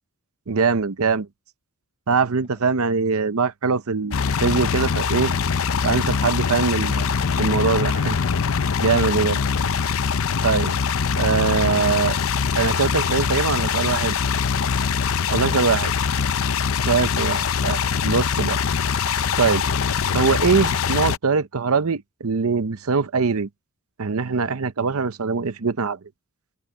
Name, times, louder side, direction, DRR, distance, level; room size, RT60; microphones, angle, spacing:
voice 1, 0.5-1.3 2.1-5.3 5.8-6.9 7.4-8.2 8.8-9.4 10.4-10.7 11.2-12.2 12.6-14.2 15.3-15.9 16.8-18.6 19.4-19.6 20.1-23.5 24.0-26.0, right 5 dB, 70° right, 0.7 m, -22 dB
voice 2, 2.1-2.8, left 2 dB, 30° left, 7.3 m, -57 dB
sound 1, 4.1-21.2, left 6 dB, 65° left, 0.6 m, -23 dB
head